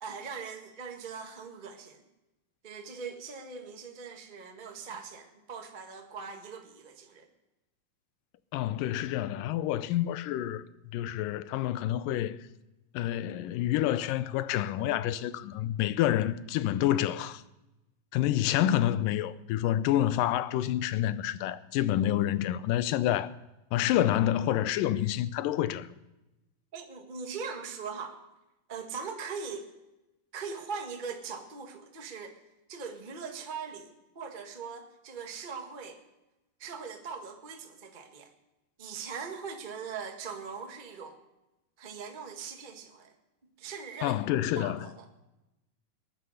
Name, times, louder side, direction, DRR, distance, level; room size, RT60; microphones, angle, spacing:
voice 1, 0.0-2.0 2.6-7.3 26.7-28.2 28.7-29.7 30.3-32.4 32.7-36.0 36.6-38.3 38.8-41.2 41.8-43.1 43.6-44.2 44.6-45.1, right 5 dB, 60° right, 0.5 m, -41 dB
voice 2, 8.5-12.4 12.9-17.4 18.1-23.3 23.7-25.9 44.0-44.9, left 12 dB, 80° left, 2.3 m, -28 dB
20.0 x 9.5 x 6.5 m
omnidirectional pair, 4.0 m